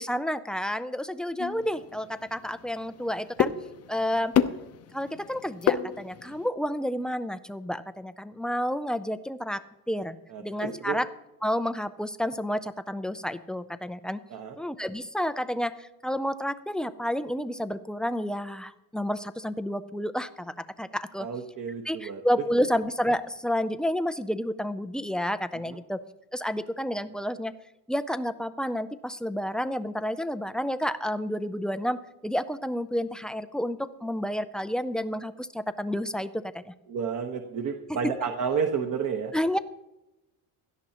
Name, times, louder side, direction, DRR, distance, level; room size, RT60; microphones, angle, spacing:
voice 1, 0.0-3.5 3.9-4.3 4.9-10.2 10.4-11.1 11.4-14.2 14.6-21.3 21.9-26.0 26.3-27.5 27.9-36.7 37.9-38.1 39.3-39.6, equal, ahead, 12 dB, 0.3 m, -30 dB
sound 1, 1.4-6.5, left 9 dB, 35° left, 0.7 m, -31 dB
voice 2, 10.3-11.0 14.3-14.6 21.2-22.2 25.7-25.8 36.9-39.3, right 6 dB, 45° right, 4 dB, 1.2 m, -31 dB
17.0 x 12.0 x 2.9 m, 0.94 s
cardioid pair, 120°, 42 cm